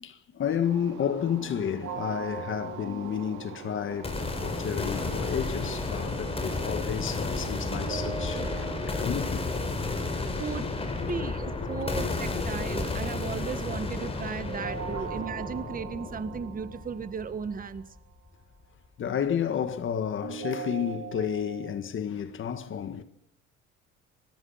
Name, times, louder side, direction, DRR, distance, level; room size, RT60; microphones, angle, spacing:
voice 1, 0.0-4.1 4.4-9.5 10.6-10.7 11.0-12.5 14.9-15.1 19.0-23.0, left 8 dB, 40° left, 1.8 m, -32 dB
sound 1, 0.6-8.8, right 8 dB, 90° right, 3.0 m, -45 dB
sound 2, 1.8-4.8 7.7-10.8 14.5-17.7 20.2-21.7, right 7 dB, 55° right, 6.4 m, -41 dB
sound 3, 4.0-18.0, left 3 dB, 20° left, 4.6 m, -32 dB
voice 2, 10.4-10.7 11.1-17.8, right 6 dB, 30° right, 1.6 m, -35 dB
25.0 x 20.0 x 5.8 m
cardioid pair, 135°, 30 cm